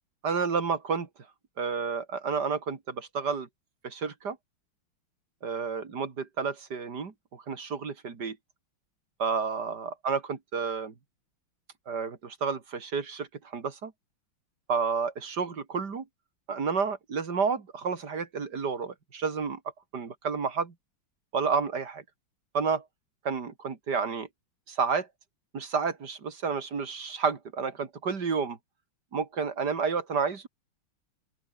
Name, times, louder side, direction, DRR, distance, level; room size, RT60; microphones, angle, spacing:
voice 1, 0.2-1.1 1.6-3.5 3.8-4.4 5.4-8.4 9.2-10.9 11.9-13.9 14.7-16.0 16.5-19.6 19.9-20.7 21.3-22.0 22.5-22.8 23.2-24.3 24.7-25.1 25.5-28.6 29.1-30.5, right 5 dB, 50° right, 3.0 m, -30 dB
open air
omnidirectional pair, 2.3 m